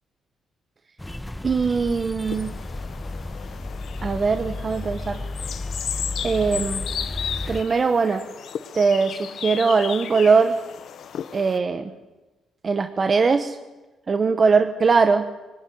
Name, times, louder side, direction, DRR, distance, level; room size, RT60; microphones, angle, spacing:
sound 1, 1.0-7.6, left 2 dB, 10° left, 1.3 m, -33 dB
voice 1, 1.4-2.5 4.0-5.2 6.2-6.8 7.5-8.2 8.7-10.5 11.3-11.9 12.6-13.6 14.1-15.3, right 4 dB, 35° right, 8 dB, 1.3 m, -20 dB
sound 2, 2.3-11.6, left 8 dB, 65° left, 1.1 m, -34 dB
24.5 x 18.0 x 9.8 m, 1.2 s
cardioid pair, 90°, 0 cm